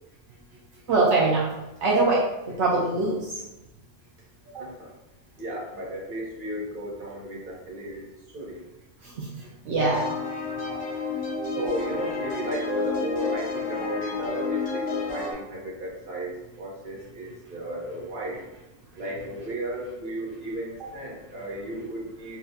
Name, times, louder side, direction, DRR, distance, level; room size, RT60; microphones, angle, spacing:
voice 1, 0.9-1.5 1.8-2.2 2.6-3.4 9.0-9.3 9.6-10.1, right 3 dB, 75° right, -4 dB, 0.9 m, -22 dB
voice 2, 4.5-4.9 5.4-8.1 8.3-8.6 11.5-18.4 18.9-22.4, right 1 dB, 50° right, -4 dB, 1.1 m, -34 dB
sound 1, 9.8-15.3, left 4 dB, 40° left, 1.7 m, -31 dB
5.5 x 2.3 x 2.6 m, 0.98 s
omnidirectional pair, 1.2 m